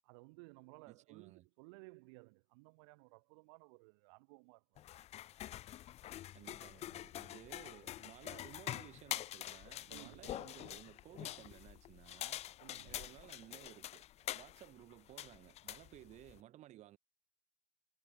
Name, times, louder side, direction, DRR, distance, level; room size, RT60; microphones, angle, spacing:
voice 1, 0.0-4.8 9.9-10.5 12.6-13.1, right 30 dB, 75° right, 3.9 m, -58 dB
voice 2, 0.9-1.5 6.3-12.5 12.8-17.0, right 14 dB, 55° right, 4.8 m, -57 dB
sound 1, 4.8-16.4, left 13 dB, 50° left, 0.9 m, -46 dB
hypercardioid pair, 85°, 14 cm